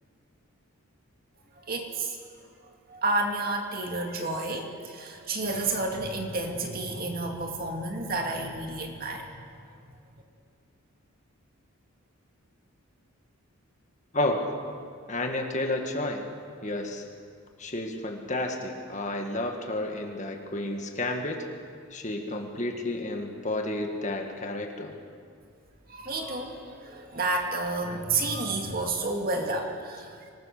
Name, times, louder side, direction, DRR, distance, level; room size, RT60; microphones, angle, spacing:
voice 1, 1.7-2.2 2.9-9.4 25.9-30.3, right 2 dB, 40° right, 2 dB, 2.4 m, -30 dB
voice 2, 14.1-14.5 15.1-16.2 16.6-17.0 17.6-21.4 21.9-25.0, left 2 dB, 35° left, 3 dB, 1.9 m, -31 dB
25.0 x 20.0 x 6.7 m, 2.2 s
head